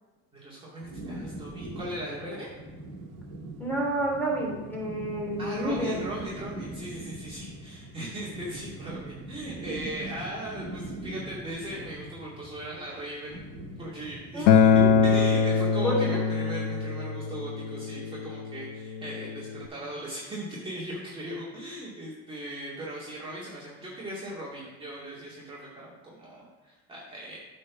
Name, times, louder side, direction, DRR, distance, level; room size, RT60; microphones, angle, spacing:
voice 1, 0.3-2.5 5.4-14.7 15.0-27.4, right 1 dB, 15° right, -7 dB, 2.1 m, -38 dB
sound 1, 0.8-15.2, right 2 dB, 50° right, 1.9 m, -41 dB
voice 2, 3.6-5.9 14.3-15.0 15.8-16.2, right 1 dB, 5° left, -3 dB, 2.9 m, -29 dB
Acoustic guitar, 14.5-19.7, left 6 dB, 80° left, 0.8 m, -23 dB
8.3 x 4.4 x 5.9 m, 1.2 s
cardioid pair, 125°, 32 cm